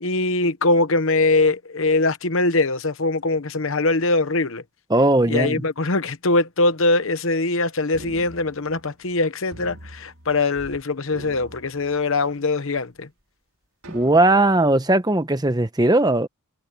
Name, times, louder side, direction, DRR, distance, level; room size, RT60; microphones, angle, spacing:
voice 1, 0.0-4.6 5.3-13.1, left 2 dB, 60° left, 1.1 m, -22 dB
voice 2, 4.9-5.6 13.9-16.3, right 2 dB, 15° right, 1.0 m, -18 dB
sound 1, 7.9-9.2 9.5-10.8 11.1-12.4 13.0-13.1 13.8-14.7, right 1 dB, 75° right, 5.9 m, -44 dB
head